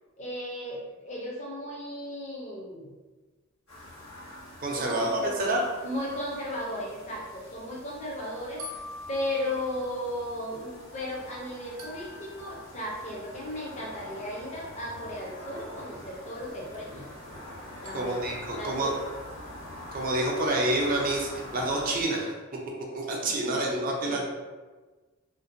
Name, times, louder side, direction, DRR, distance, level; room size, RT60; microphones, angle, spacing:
voice 1, 0.2-2.9 4.7-5.5 5.8-8.7 9.1-17.1 17.8-18.2 18.6-19.0 23.2-24.2, left 1 dB, 35° left, -4 dB, 0.5 m, -36 dB
sound 1, 3.7-22.0, left 1 dB, 80° left, 1.0 m, -45 dB
voice 2, 4.6-5.7 17.9-18.9 19.9-22.3 22.9-24.2, right 1 dB, 40° right, -1 dB, 0.5 m, -28 dB
sound 2, 4.9-6.8 8.6-10.9 11.8-12.6 16.7-16.8 17.8-18.3, equal, 85° right, 0.6 m, -45 dB
2.5 x 2.1 x 2.5 m, 1.3 s
head